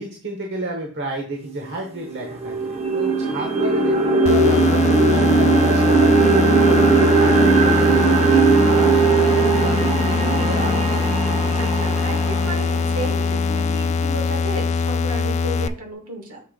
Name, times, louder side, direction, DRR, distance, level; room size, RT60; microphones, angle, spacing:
voice 1, 0.0-6.4 7.2-11.0, right 1 dB, 55° right, 2 dB, 1.1 m, -31 dB
sound 1, 1.5-1.6 2.0-14.1, right 3 dB, 30° right, 0.8 m, -19 dB
sound 2, 4.3-15.7, left 4 dB, 30° left, 0.3 m, -22 dB
voice 2, 11.6-16.4, right 1 dB, 70° right, 3 dB, 1.7 m, -33 dB
6.7 x 3.2 x 5.1 m, 0.43 s
head